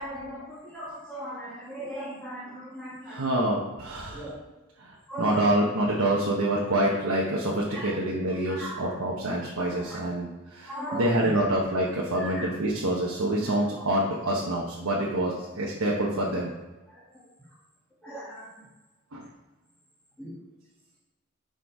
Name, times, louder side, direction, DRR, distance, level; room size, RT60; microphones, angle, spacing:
voice 1, 0.0-3.5 4.1-4.3 5.1-5.4 7.7-7.9 8.5-8.9 9.4-9.5 9.9-10.0 10.7-11.4 12.1-12.5 16.9-17.0 18.0-18.5 20.2-20.3, equal, 5° left, -9 dB, 2.0 m, -38 dB
voice 2, 3.1-4.3 4.8-16.5 19.1-19.3, right 1 dB, 85° right, -4 dB, 1.1 m, -27 dB
6.4 x 5.3 x 4.7 m, 1.2 s
head